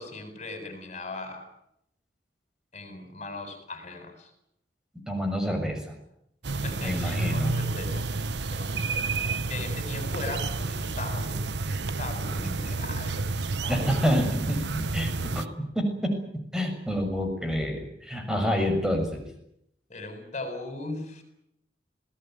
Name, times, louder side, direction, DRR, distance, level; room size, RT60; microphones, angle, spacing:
voice 1, 0.0-1.5 2.7-4.3 6.6-8.1 8.5-13.3 13.6-14.1 19.9-21.2, left 2 dB, 40° left, 6 dB, 7.7 m, -38 dB
voice 2, 5.1-5.9 6.8-7.6 13.7-14.6 14.9-16.2 16.5-19.2, equal, 5° right, 4 dB, 6.7 m, -28 dB
sound 1, 6.4-15.5, right 3 dB, 80° right, 1.1 m, -30 dB
27.0 x 19.0 x 9.4 m, 0.77 s
head